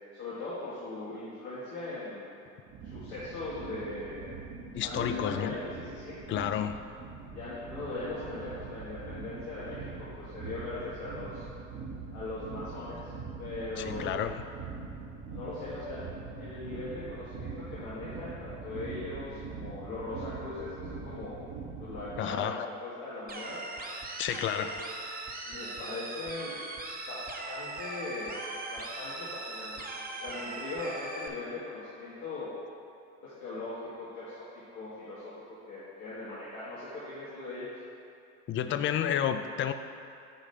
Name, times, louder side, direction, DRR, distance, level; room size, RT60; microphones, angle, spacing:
voice 1, 0.1-2.4 2.8-4.5 4.8-6.2 7.3-11.4 12.1-13.1 13.4-14.2 15.3-16.1 16.4-21.4 21.8-23.6 24.5-24.7 25.5-26.6 27.1-28.4 28.7-32.5 33.2-37.7, left 2 dB, 85° left, -11 dB, 1.6 m, -40 dB
sound 1, 2.7-22.2, right 4 dB, 50° right, 1.2 m, -43 dB
voice 2, 4.7-5.6 6.3-6.9 13.8-14.5 22.2-22.7 24.2-24.8 38.5-39.7, left 9 dB, 30° left, 9 dB, 0.4 m, -31 dB
sound 2, 23.3-31.3, right 2 dB, 20° right, 0.9 m, -39 dB
8.5 x 3.1 x 5.3 m, 2.6 s
hypercardioid pair, 70°, 40 cm